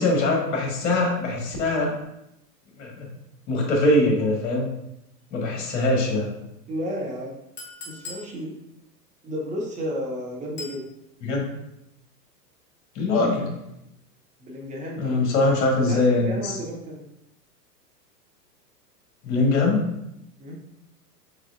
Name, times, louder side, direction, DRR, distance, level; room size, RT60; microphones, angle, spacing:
voice 1, 0.0-1.9 2.8-3.1 3.5-4.7 5.3-6.3 11.2-11.5 12.9-13.5 15.0-16.6 19.2-19.9, left 2 dB, 45° left, -1 dB, 1.6 m, -22 dB
voice 2, 6.7-7.3 7.9-8.6 9.2-10.8 14.4-15.3 15.9-17.0 20.4-20.6, equal, 15° right, -2 dB, 0.8 m, -32 dB
Chink clink, 7.6-8.3 10.6-10.8, left 3 dB, 20° left, 1.1 m, -38 dB
4.9 x 4.2 x 2.6 m, 0.84 s
figure-of-eight pair, 100°, 49 cm